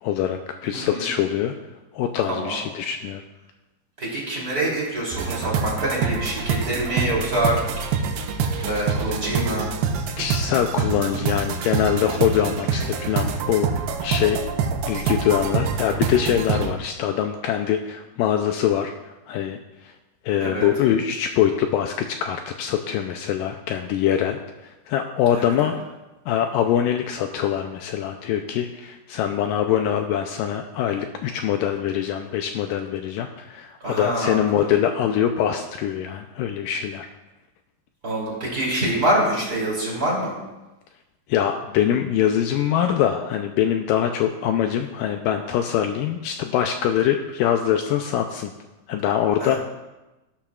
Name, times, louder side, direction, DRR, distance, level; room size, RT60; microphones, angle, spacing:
voice 1, 0.0-1.5 1.9-3.2 8.3-8.7 10.2-13.7 14.0-14.4 14.9-18.9 19.3-19.9 20.3-21.9 22.2-24.4 24.9-25.8 26.3-37.1 41.3-48.5 48.9-49.6, left 10 dB, 90° left, 5 dB, 1.9 m, -23 dB
voice 2, 0.7-1.1 2.3-2.6 4.0-7.9 8.6-9.7 20.4-20.7 25.4-25.7 33.8-34.7 38.0-40.4 49.4-49.6, right 1 dB, 25° right, -5 dB, 3.0 m, -25 dB
sound 1, 5.1-16.7, right 5 dB, 85° right, 2.7 m, -26 dB
14.5 x 12.0 x 2.4 m, 1.0 s
omnidirectional pair, 4.5 m